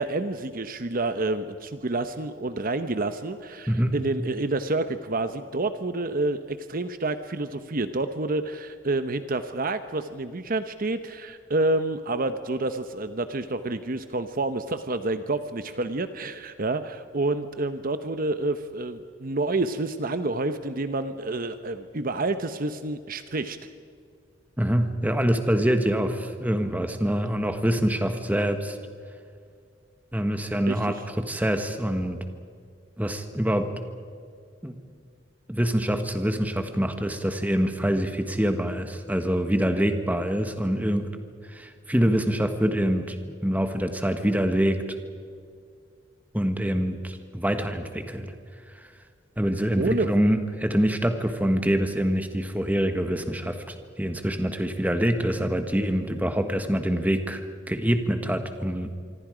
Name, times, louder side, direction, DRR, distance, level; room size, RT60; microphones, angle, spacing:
voice 1, 0.0-23.6 30.7-30.9 49.8-50.2, right 2 dB, 50° right, 10 dB, 0.9 m, -28 dB
voice 2, 3.7-4.0 24.6-28.8 30.1-32.2 33.0-33.7 34.6-34.8 35.5-41.1 41.5-43.2 43.4-44.8 46.3-48.3 49.4-53.6 54.0-58.9, equal, 10° right, 7 dB, 1.5 m, -25 dB
26.0 x 24.5 x 5.1 m, 2.2 s
head